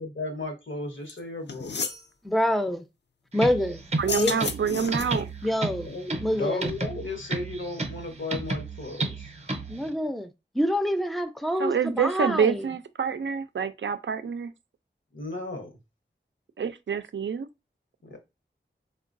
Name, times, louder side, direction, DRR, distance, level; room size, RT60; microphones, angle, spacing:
voice 1, 0.0-1.8 5.8-9.3 15.1-15.8 18.0-18.2, left 2 dB, 80° left, 0.9 m, -35 dB
sound 1, 1.1-1.2 1.5-2.0 4.0-5.3, left 5 dB, 60° left, 0.4 m, -32 dB
voice 2, 2.2-2.8 3.3-3.9 4.2-4.4 5.4-5.9 6.2-6.7 9.7-10.3 10.5-12.7, equal, ahead, 0.4 m, -26 dB
sound 2, 3.3-9.9, right 2 dB, 35° right, 0.7 m, -33 dB
voice 3, 4.0-5.5 11.6-14.5 16.6-17.5, right 6 dB, 70° right, 0.4 m, -27 dB
3.8 x 2.2 x 2.5 m
wide cardioid pair, 45°, 20 cm